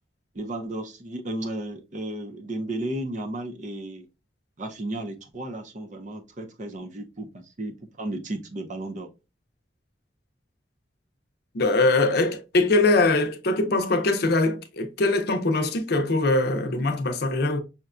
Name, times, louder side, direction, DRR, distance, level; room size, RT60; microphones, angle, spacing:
voice 1, 0.3-4.1 4.6-9.1, right 1 dB, 45° right, 0.6 m, -34 dB
voice 2, 11.5-17.6, left 2 dB, 60° left, 0.6 m, -22 dB
5.6 x 2.2 x 2.4 m
head